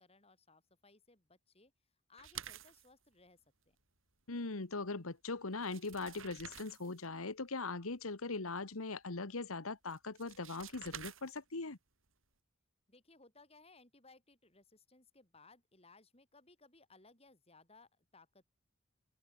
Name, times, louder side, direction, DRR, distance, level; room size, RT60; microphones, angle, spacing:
voice 1, 0.0-1.7 2.1-3.8 12.9-18.4, left 3 dB, 30° left, 6.2 m, -63 dB
sound 1, 2.2-2.9 5.1-5.2 5.5-7.1 9.9-11.6, right 9 dB, 70° right, 6.6 m, -50 dB
voice 2, 4.3-11.8, left 3 dB, 85° left, 1.5 m, -40 dB
open air
head